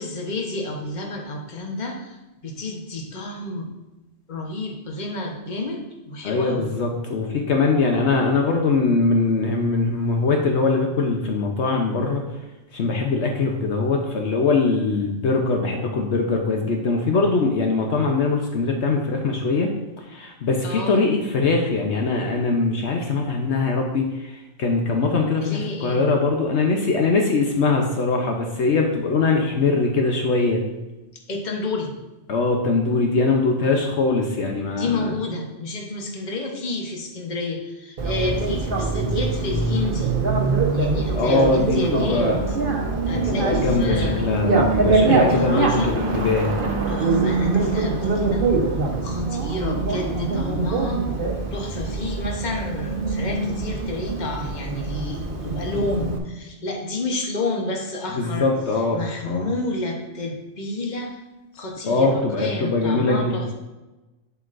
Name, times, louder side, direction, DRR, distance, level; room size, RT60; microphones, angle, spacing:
voice 1, 0.0-3.7 4.3-6.7 20.6-21.1 25.4-26.0 31.3-31.9 34.6-40.1 40.7-42.6 43.1-44.4 45.2-45.9 46.9-48.5 49.0-51.0 51.5-58.5 58.9-61.2 61.5-63.5, left 2 dB, 40° left, 1 dB, 1.1 m, -30 dB
voice 2, 6.2-12.2 12.7-30.6 32.3-35.1 41.1-42.4 43.1-46.5 58.2-59.0 59.2-59.5 61.8-63.4, left 3 dB, 70° left, 2 dB, 1.1 m, -22 dB
Bicycle, 38.0-56.2, right 3 dB, 50° right, 1.1 m, -23 dB
8.2 x 7.8 x 2.6 m, 1.1 s
omnidirectional pair, 1.2 m